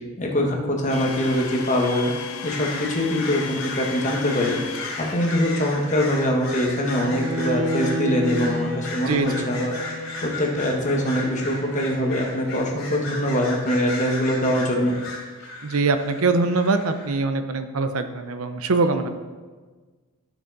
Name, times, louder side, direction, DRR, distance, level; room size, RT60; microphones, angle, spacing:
voice 1, 0.2-2.1 2.4-9.7 10.2-14.9, left 1 dB, 35° left, 0 dB, 1.4 m, -23 dB
Domestic sounds home sounds, 0.9-6.4, left 6 dB, 85° left, 0.8 m, -35 dB
sound 1, 1.1-2.1 2.4-17.2, left 2 dB, 65° left, 3.0 m, -36 dB
Bowed string instrument, 6.9-13.0, equal, 55° right, 2.4 m, -32 dB
voice 2, 9.1-9.5 15.6-19.1, right 3 dB, 75° right, 9 dB, 0.7 m, -23 dB
13.0 x 6.2 x 4.1 m, 1.4 s
head